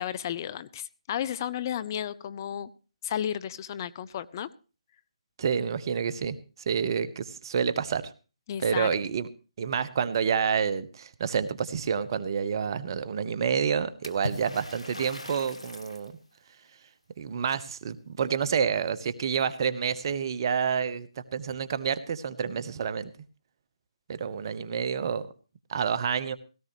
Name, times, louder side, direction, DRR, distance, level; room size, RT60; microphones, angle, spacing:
voice 1, 0.0-2.7 3.0-4.5 8.5-8.9, left 10 dB, 35° left, 17 dB, 0.6 m, -33 dB
voice 2, 5.4-6.4 6.7-8.1 8.6-9.3 9.6-16.1 17.2-23.1 24.1-25.3 25.7-26.4, right 7 dB, 45° right, 14 dB, 1.1 m, -28 dB
Water / Splash splatter, 14.0-16.1, left 2 dB, 90° left, 1.7 m, -39 dB
17.0 x 14.5 x 3.1 m, 0.34 s
figure-of-eight pair, 145°, 3 cm